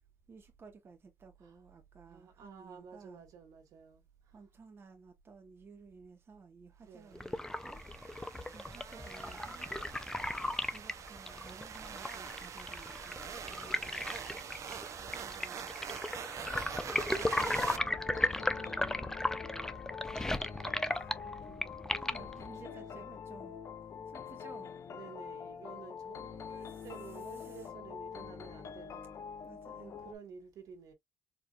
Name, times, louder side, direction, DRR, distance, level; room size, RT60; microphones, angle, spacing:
voice 1, 0.3-3.2 4.3-7.8 8.5-9.7 10.7-13.8 15.1-15.7 20.9-21.2 22.0-23.6 24.1-24.7 26.6-27.7 29.4-30.1, right 4 dB, 40° right, 1.0 m, -56 dB
voice 2, 2.0-4.5 6.8-7.3 13.4-16.0 17.1-19.2 21.2-21.7 22.1-23.0 24.8-29.2 29.8-30.9, right 6 dB, 80° right, 1.5 m, -53 dB
sound 1, 7.2-22.5, left 1 dB, 10° left, 0.5 m, -36 dB
sound 2, 7.3-17.8, right 7 dB, 60° right, 0.7 m, -44 dB
sound 3, 17.5-30.1, left 7 dB, 55° left, 0.6 m, -45 dB
4.5 x 2.5 x 2.3 m
cardioid pair, 95°, 6 cm